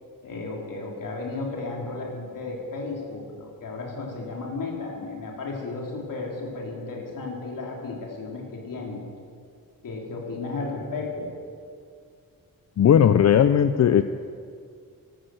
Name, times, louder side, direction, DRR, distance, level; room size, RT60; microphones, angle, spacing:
voice 1, 0.2-9.0 9.8-11.3, left 3 dB, 65° left, -2 dB, 3.6 m, -34 dB
voice 2, 12.8-14.0, left 9 dB, 50° left, 11 dB, 0.5 m, -17 dB
13.5 x 13.0 x 7.8 m, 2.3 s
wide cardioid pair, 150°, 35 cm